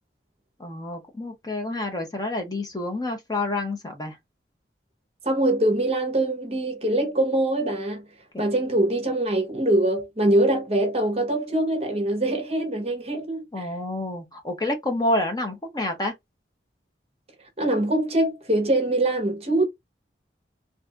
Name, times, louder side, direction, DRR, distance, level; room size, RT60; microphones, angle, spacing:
voice 1, 0.6-4.2 8.3-8.4 13.5-16.1, left 1 dB, 20° left, 0.7 m, -28 dB
voice 2, 5.2-8.0 8.4-13.7 17.6-19.6, right 1 dB, 35° right, 0.8 m, -23 dB
2.6 x 2.4 x 3.3 m
head